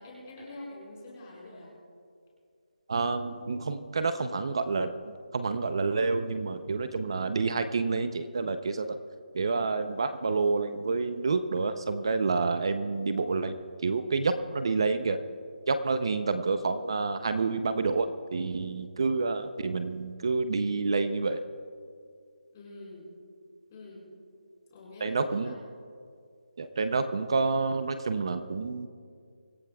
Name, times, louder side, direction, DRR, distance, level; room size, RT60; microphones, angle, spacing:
voice 1, 0.0-1.7 22.5-23.1 23.7-24.0 24.7-25.5, left 2 dB, 20° left, -5 dB, 4.6 m, -45 dB
voice 2, 2.9-9.0 9.3-13.6 13.8-15.2 15.7-21.4 25.0-25.5 26.6-28.9, right 4 dB, 35° right, 10 dB, 0.6 m, -28 dB
25.5 x 16.0 x 2.3 m, 2.2 s
figure-of-eight pair, 175°, 5 cm